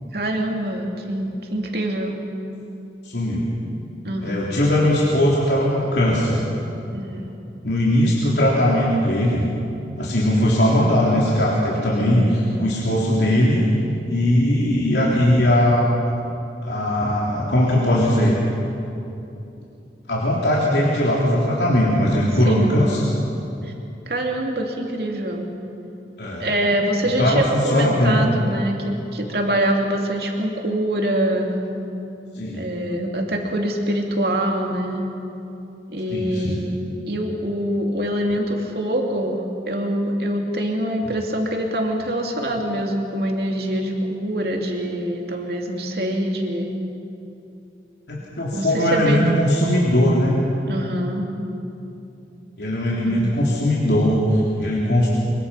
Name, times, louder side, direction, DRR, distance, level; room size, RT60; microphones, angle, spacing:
voice 1, 0.1-2.2 4.0-4.5 6.9-7.3 12.0-12.4 22.4-22.8 23.6-23.7 24.1-25.5 26.4-31.6 32.5-35.1 35.9-36.7 37.1-46.8 48.5-49.4 50.7-51.3 52.9-53.4, right 1 dB, 60° right, 1 dB, 2.8 m, -24 dB
voice 2, 3.0-3.5 4.2-6.4 7.6-9.5 10.0-12.2 12.6-13.6 14.1-15.9 16.6-18.4 20.1-23.0 26.2-26.5 27.2-28.2 32.3-32.6 36.1-36.6 48.1-50.4 52.6-55.1, left 1 dB, 75° left, -6 dB, 3.5 m, -19 dB
24.5 x 22.5 x 5.8 m, 2.8 s
head